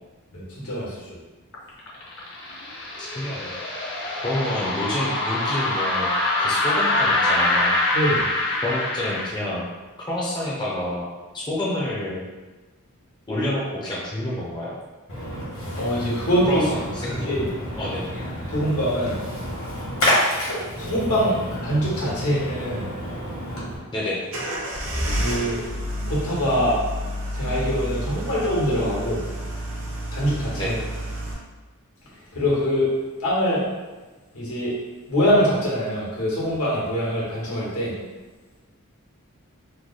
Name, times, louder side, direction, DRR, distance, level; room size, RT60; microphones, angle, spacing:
voice 1, 0.3-1.0 7.9-8.2 15.8-16.6 17.0-17.5 18.5-19.2 20.8-22.8 25.1-25.6 26.1-26.8 27.3-29.2 30.1-30.7 32.3-32.9 33.2-33.6 34.3-34.7 35.1-37.9, equal, 85° left, -6 dB, 1.3 m, -23 dB
sound 1, 1.5-9.3, left 2 dB, 50° left, 0.7 m, -24 dB
voice 2, 3.0-3.5 4.2-6.1 6.4-7.8 8.6-9.7 10.1-11.1 11.3-12.2 13.3-14.7 16.5-17.3 17.8-18.1 23.9-24.2 30.5-30.7, left 1 dB, 20° left, -6 dB, 0.5 m, -28 dB
Splash splatter, 15.1-23.8, equal, 65° left, 1.2 m, -29 dB
sound 2, 24.3-31.3, equal, 65° right, 0.7 m, -30 dB
3.2 x 2.1 x 3.8 m, 1.2 s
head